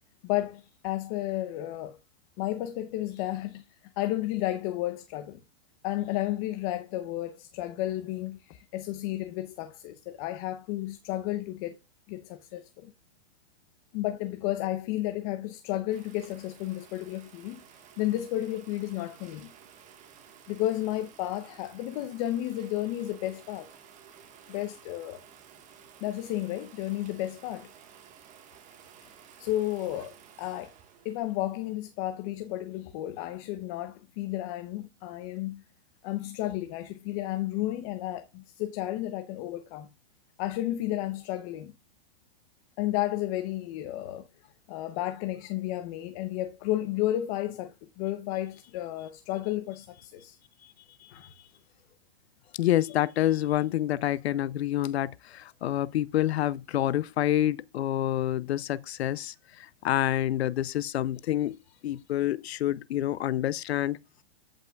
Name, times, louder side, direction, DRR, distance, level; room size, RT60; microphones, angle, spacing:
voice 1, 0.2-2.0 2.4-3.6 4.0-5.4 5.8-11.8 12.1-12.9 13.9-17.6 18.0-19.5 20.5-23.7 24.5-25.2 26.0-27.7 29.4-30.7 31.0-35.6 36.0-39.9 40.4-41.7 42.8-44.2 44.7-50.4 51.1-51.3, left 14 dB, 35° left, 0.8 m, -32 dB
sound 1, 15.9-31.7, right 8 dB, 25° right, 1.5 m, -54 dB
voice 2, 51.0-51.3 52.6-61.6 61.8-64.0, left 13 dB, 85° left, 0.6 m, -28 dB
14.5 x 5.4 x 2.3 m
hypercardioid pair, 150°, 31 cm